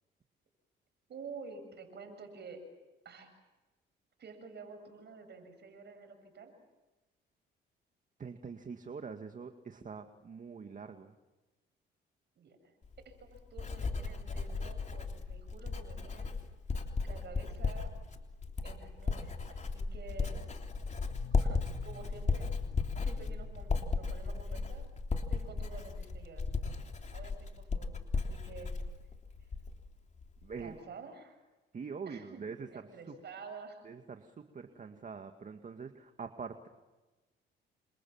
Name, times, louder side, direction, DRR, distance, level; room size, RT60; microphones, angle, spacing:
voice 1, 1.1-2.6 3.0-3.3 4.2-6.5 12.4-12.7 13.0-16.4 17.0-17.9 18.6-20.4 21.4-22.5 23.0-24.9 25.3-26.4 27.1-28.7 30.6-31.4 32.1-32.4 32.7-33.9 34.7-34.9, right 4 dB, 60° right, 7 dB, 7.6 m, -50 dB
voice 2, 8.2-11.1 30.4-30.7 31.7-32.7 33.1-33.2 33.8-36.7, right 5 dB, 40° right, 6 dB, 2.0 m, -44 dB
Writing, 12.8-29.9 30.2-30.6, left 4 dB, 35° left, 3.4 m, -36 dB
sound 1, 20.9-24.6, left 4 dB, 60° left, 2.9 m, -52 dB
29.0 x 26.5 x 7.3 m, 1.1 s
cardioid pair, 90°, 20 cm